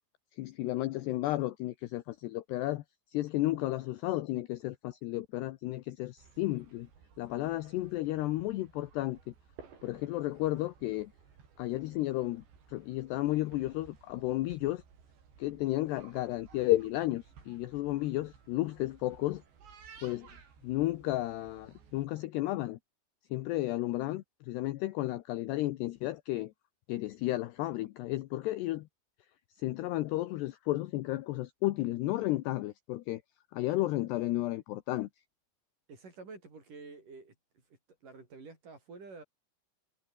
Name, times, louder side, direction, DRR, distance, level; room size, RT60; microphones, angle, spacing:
voice 1, 0.4-2.8 3.1-6.9 7.2-9.3 9.8-11.1 11.6-12.4 12.7-14.8 15.4-19.4 20.0-20.3 20.6-22.8 23.3-26.5 26.9-28.9 29.6-33.2 33.5-35.1, left 16 dB, 75° left, 2.6 m, -33 dB
sound 1, 6.2-22.1, right 6 dB, 65° right, 6.9 m, -57 dB
voice 2, 35.9-37.3 37.7-39.2, right 4 dB, 40° right, 7.7 m, -49 dB
omnidirectional pair, 5.7 m